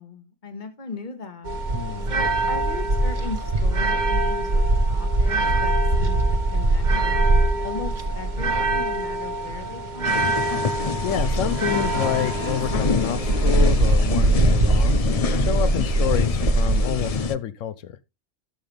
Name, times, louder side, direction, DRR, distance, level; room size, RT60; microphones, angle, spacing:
voice 1, 0.0-1.6 2.1-7.2 7.6-10.6, left 4 dB, 40° left, 1.5 m, -38 dB
sound 1, 1.4-17.3, right 2 dB, 40° right, 1.1 m, -22 dB
voice 2, 1.7-2.1 10.6-10.7 11.0-15.0 15.4-18.0, left 10 dB, 85° left, 1.1 m, -28 dB
sound 2, 10.1-17.4, left 6 dB, 55° left, 0.4 m, -27 dB
sound 3, 11.3-16.1, right 7 dB, 80° right, 1.7 m, -39 dB
13.0 x 5.8 x 3.3 m
omnidirectional pair, 1.3 m